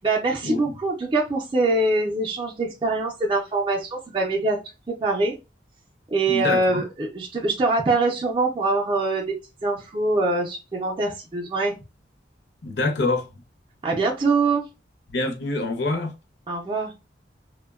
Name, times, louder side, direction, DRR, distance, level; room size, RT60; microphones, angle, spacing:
voice 1, 0.0-4.6 4.9-5.4 6.1-9.3 9.6-11.8 13.8-14.6 16.5-16.9, right 2 dB, 25° right, 0.4 m, -23 dB
voice 2, 6.3-6.8 12.6-13.3 15.1-16.1, left 2 dB, 70° left, 0.6 m, -25 dB
2.6 x 2.1 x 2.3 m
head